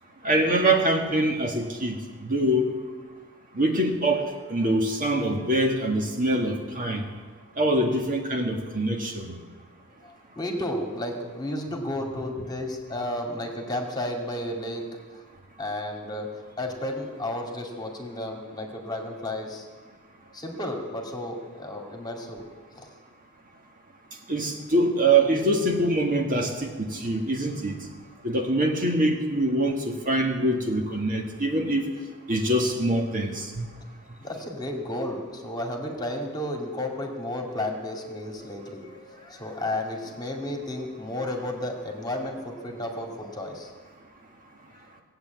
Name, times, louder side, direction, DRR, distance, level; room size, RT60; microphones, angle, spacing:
voice 1, 0.2-2.0 2.2-2.7 3.5-7.0 7.6-9.3 24.3-27.8 28.2-31.9 32.3-33.7, right 1 dB, 40° right, 2 dB, 1.8 m, -24 dB
voice 2, 10.0-14.8 15.6-16.3 16.6-19.7 20.3-22.4 22.8-22.9 34.2-43.7 44.7-44.8, left 1 dB, 20° left, 2 dB, 2.1 m, -32 dB
18.5 x 8.1 x 9.3 m, 1.4 s
head